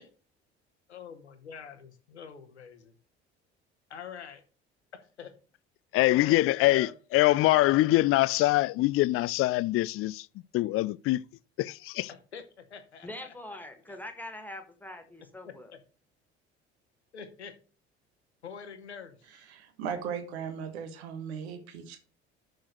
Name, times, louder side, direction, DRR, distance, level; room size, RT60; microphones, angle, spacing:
voice 1, 0.9-2.9 3.9-4.4 5.0-5.3 6.1-6.9 12.1-13.6 13.9-14.0 15.4-15.8 17.1-17.5 18.4-19.4, left 6 dB, 85° left, 1.2 m, -46 dB
voice 2, 5.9-10.3 10.5-11.2 11.6-12.1, left 17 dB, 45° left, 0.4 m, -24 dB
voice 3, 13.0-15.7, left 1 dB, 5° left, 1.9 m, -43 dB
voice 4, 19.5-22.0, right 7 dB, 75° right, 1.5 m, -37 dB
6.5 x 6.4 x 6.4 m
figure-of-eight pair, 60°, 33 cm